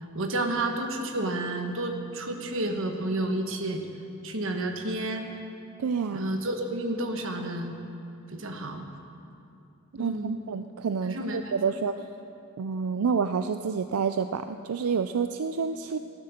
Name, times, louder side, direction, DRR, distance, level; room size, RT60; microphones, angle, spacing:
voice 1, 0.1-3.8 4.2-5.3 6.1-7.7 8.3-8.9 10.0-10.4 11.0-11.8, right 1 dB, 60° right, 4 dB, 1.4 m, -31 dB
voice 2, 5.8-6.3 10.0-11.9 12.6-16.0, right 5 dB, 85° right, 9 dB, 0.5 m, -28 dB
15.0 x 12.0 x 6.7 m, 2.7 s
head